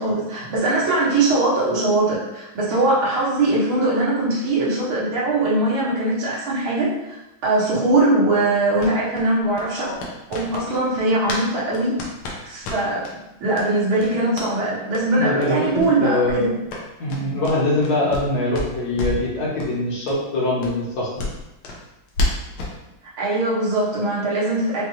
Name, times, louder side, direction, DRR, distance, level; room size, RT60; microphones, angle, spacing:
voice 1, 0.0-7.2 7.4-9.9 10.3-12.0 12.5-13.0 13.4-16.5 23.2-24.9, right 2 dB, 85° right, -7 dB, 2.0 m, -21 dB
sound 1, 8.8-11.5 11.7-13.1 13.5-13.7 14.0-14.5 14.9-15.1 15.4-15.5 15.7-15.9 16.2-18.3 18.5-19.3 19.6-19.7 20.1-20.2 20.6-22.8, left 2 dB, 85° left, 1.6 m, -30 dB
voice 2, 15.2-16.5 17.0-21.3, left 2 dB, 55° left, -5 dB, 1.3 m, -23 dB
5.2 x 2.3 x 3.0 m, 0.92 s
omnidirectional pair, 2.2 m